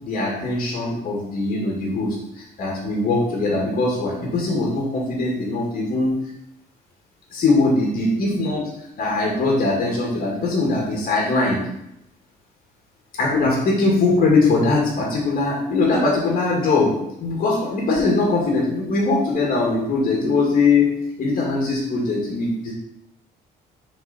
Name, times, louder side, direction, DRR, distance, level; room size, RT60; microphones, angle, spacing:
voice 1, 0.0-6.1 7.3-8.7 9.0-11.6 13.2-16.9 17.2-22.7, left 3 dB, 55° left, -3 dB, 2.1 m, -21 dB
6.4 x 4.8 x 4.2 m, 0.80 s
cardioid pair, 110°, 17 cm